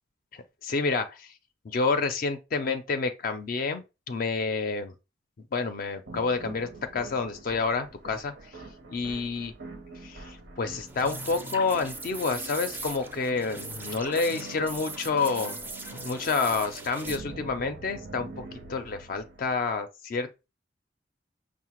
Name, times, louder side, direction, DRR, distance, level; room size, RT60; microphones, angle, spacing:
voice 1, 0.3-1.3 1.6-4.9 5.5-8.6 8.9-9.5 10.0-20.5, left 4 dB, 50° left, 0.4 m, -29 dB
sound 1, 6.1-19.7, right 2 dB, 70° right, 0.7 m, -45 dB
sound 2, 10.9-17.2, right 2 dB, 10° right, 0.4 m, -40 dB
5.5 x 2.1 x 2.9 m
head